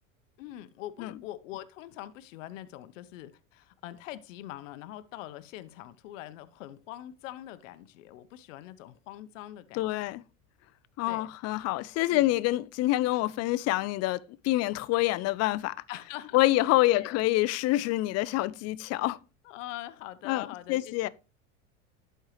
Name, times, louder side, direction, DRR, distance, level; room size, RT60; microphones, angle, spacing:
voice 1, 0.4-9.9 11.1-11.3 12.0-12.4 13.1-13.3 15.9-17.2 19.4-21.1, left 14 dB, 80° left, 0.7 m, -43 dB
voice 2, 9.7-10.2 11.0-15.8 16.3-19.2 20.3-21.1, left 17 dB, 45° left, 0.4 m, -27 dB
11.5 x 4.5 x 3.1 m
supercardioid pair, 100°, 38 cm